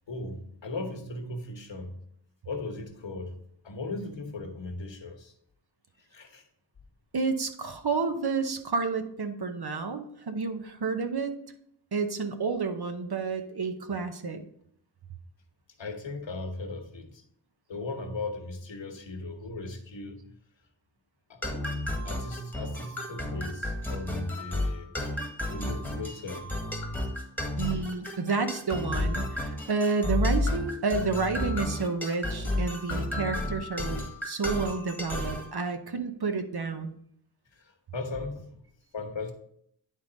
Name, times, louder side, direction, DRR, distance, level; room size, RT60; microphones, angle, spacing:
voice 1, 0.1-1.9 2.4-3.4 3.6-5.3 6.1-6.4 15.8-17.2 17.7-20.3 21.3-21.4 22.0-24.9 25.5-26.5 37.5-38.6 38.9-39.3, left 2 dB, 85° left, 4 dB, 1.1 m, -37 dB
voice 2, 7.1-11.3 11.9-14.4 27.6-36.9, right 4 dB, 60° right, 7 dB, 0.9 m, -30 dB
sound 1, 21.4-35.5, left 1 dB, 5° left, 1.4 m, -32 dB
10.0 x 3.7 x 3.9 m, 0.68 s
wide cardioid pair, 55°, 44 cm